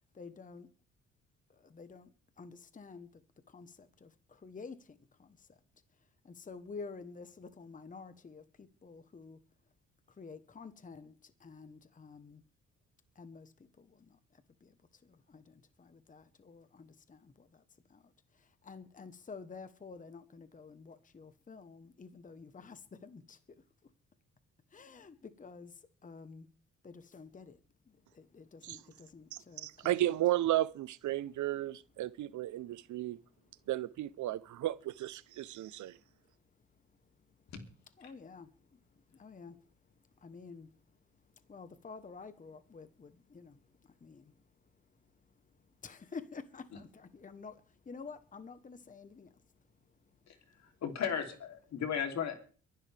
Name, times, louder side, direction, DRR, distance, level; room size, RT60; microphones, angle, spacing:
voice 1, 0.1-0.7 1.5-2.1 2.4-3.2 3.5-5.6 6.2-9.4 10.2-12.4 13.2-14.7 15.0-17.6 17.9-18.0 18.3-23.4 24.7-26.5 26.8-27.6 27.9-30.1 38.0-38.5 39.1-39.6 40.2-40.7 41.5-44.3 45.8-49.3, left 4 dB, 25° left, 1.1 m, -50 dB
voice 2, 29.6-33.2 33.7-36.0, right 14 dB, 75° right, 0.8 m, -34 dB
voice 3, 50.8-52.4, left 7 dB, 65° left, 3.2 m, -35 dB
23.0 x 11.5 x 3.5 m
cardioid pair, 90°, 30 cm